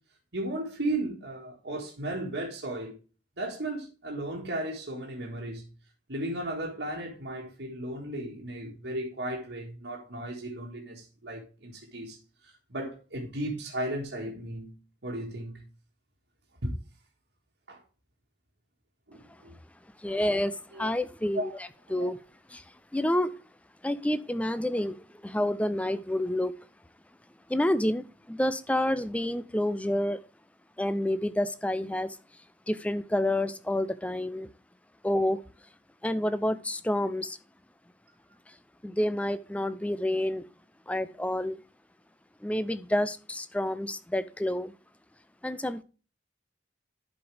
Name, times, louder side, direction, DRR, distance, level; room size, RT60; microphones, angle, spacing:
voice 1, 0.3-2.9 3.4-5.7 6.1-12.2 12.4-14.7 15.0-15.6 16.6-16.7 17.7-17.8 19.1-19.6 20.7-20.9 21.3-21.5 21.9-22.1, right 1 dB, 70° right, 1.7 m, -35 dB
voice 2, 20.0-21.5 21.9-22.2 22.5-23.3 23.8-26.5 27.5-30.2 30.8-32.2 32.7-34.5 35.0-35.4 36.0-37.4 38.5-38.6 38.8-40.5 40.9-41.6 42.4-44.7 45.4-45.8, left 1 dB, 5° left, 0.4 m, -29 dB
11.5 x 4.9 x 3.3 m
head